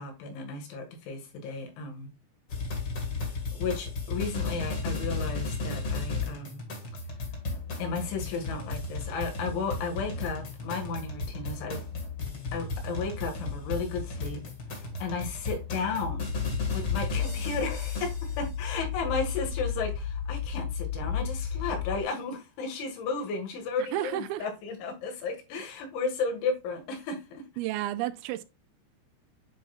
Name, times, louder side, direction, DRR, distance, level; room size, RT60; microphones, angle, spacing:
voice 1, 0.0-2.1 3.6-6.6 7.8-11.8 12.5-14.4 15.0-16.3 16.7-27.4, left 4 dB, 85° left, 4.1 m, -34 dB
sound 1, 2.5-18.4, left 3 dB, 45° left, 1.8 m, -34 dB
sound 2, 16.0-22.0, left 7 dB, 70° left, 2.6 m, -33 dB
voice 2, 23.8-24.5 27.6-28.4, right 13 dB, 85° right, 2.9 m, -32 dB
9.9 x 4.2 x 2.3 m
omnidirectional pair, 5.3 m